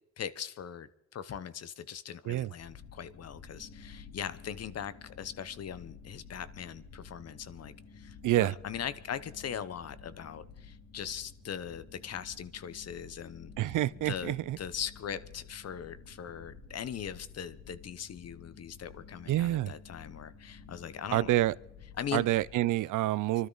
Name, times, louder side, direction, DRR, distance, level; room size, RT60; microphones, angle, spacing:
voice 1, 0.2-13.8 14.0-21.3 22.0-22.3, left 8 dB, 55° left, 0.9 m, -40 dB
sound 1, 2.6-22.5, left 5 dB, 90° left, 3.6 m, -52 dB
voice 2, 8.2-8.5 13.6-14.6 19.3-19.7 21.1-21.6 22.1-23.5, right 15 dB, 75° right, 0.5 m, -27 dB
24.5 x 12.5 x 4.0 m
cardioid pair, 90°, 31 cm